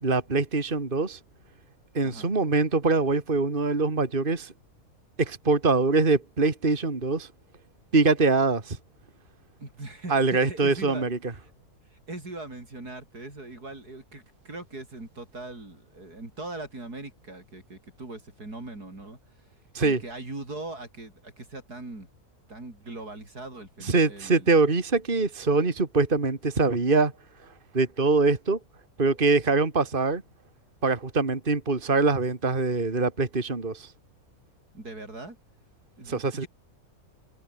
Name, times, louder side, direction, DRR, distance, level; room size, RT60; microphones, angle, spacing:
voice 1, 0.0-1.2 1.9-4.5 5.2-7.3 7.9-8.8 10.1-11.2 19.7-20.0 23.8-27.1 27.7-28.6 29.0-30.2 30.8-33.9 36.1-36.4, right 3 dB, 35° right, 2.5 m, -23 dB
voice 2, 9.6-11.0 11.4-11.5 11.9-19.2 19.8-22.1 22.5-24.6 34.7-35.4 36.0-36.5, right 2 dB, 85° right, 6.9 m, -40 dB
open air
omnidirectional pair, 1.6 m